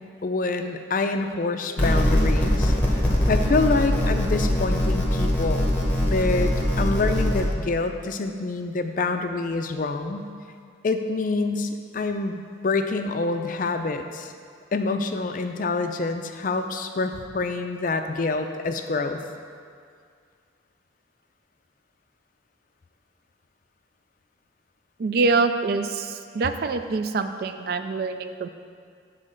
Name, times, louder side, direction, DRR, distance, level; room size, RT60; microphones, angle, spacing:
voice 1, 0.2-6.5 6.8-10.3 10.8-14.3 14.7-19.2, left 3 dB, 45° left, 7 dB, 0.4 m, -26 dB
sound 1, 1.8-7.4, left 1 dB, 10° left, 1.0 m, -22 dB
voice 2, 25.0-28.5, right 4 dB, 50° right, 8 dB, 0.3 m, -25 dB
7.6 x 3.9 x 6.3 m, 2.2 s
head